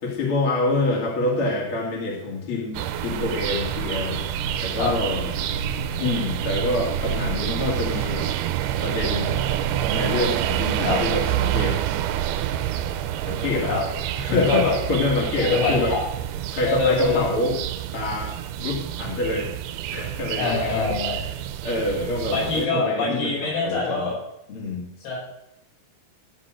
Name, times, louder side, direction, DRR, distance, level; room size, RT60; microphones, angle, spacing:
voice 1, 0.0-5.3 6.0-8.3 8.8-9.4 9.9-11.8 13.2-13.7 14.1-16.0 16.5-17.6 17.9-19.5 19.9-21.3 21.6-24.1 24.5-24.8, left 2 dB, 35° left, -2 dB, 3.1 m, -26 dB
sound 1, 2.7-22.7, right 10 dB, 85° right, 2.7 m, -27 dB
voice 2, 14.3-14.7 15.4-16.0 16.6-17.2 20.4-21.2 22.3-24.1 25.0-25.2, left 3 dB, 70° left, -4 dB, 7.3 m, -24 dB
14.5 x 6.6 x 7.6 m, 0.82 s
omnidirectional pair, 4.6 m